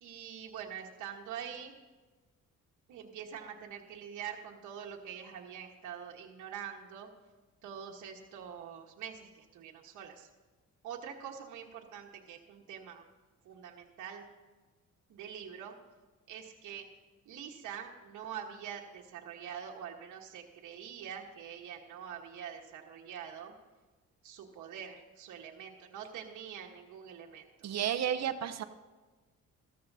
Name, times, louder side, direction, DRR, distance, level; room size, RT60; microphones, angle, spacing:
voice 1, 0.0-1.7 2.9-7.1 7.6-10.3 10.8-13.0 13.4-14.2 15.1-15.7 16.3-16.9 17.2-23.5 24.2-27.7, right 8 dB, 80° right, 0 dB, 1.4 m, -45 dB
voice 2, 27.6-28.6, right 9 dB, 60° right, 10 dB, 0.7 m, -32 dB
15.5 x 13.5 x 2.7 m, 1.3 s
cardioid pair, 90°, 30 cm